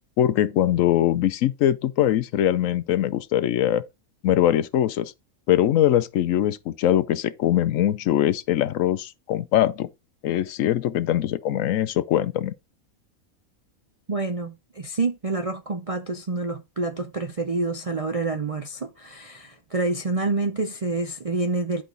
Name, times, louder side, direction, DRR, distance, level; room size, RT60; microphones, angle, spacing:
voice 1, 0.2-3.8 4.2-5.1 5.5-9.9 10.2-12.5, left 11 dB, 70° left, 0.9 m, -22 dB
voice 2, 14.1-21.8, right 3 dB, 45° right, 0.4 m, -27 dB
10.0 x 4.9 x 3.8 m
omnidirectional pair, 1.5 m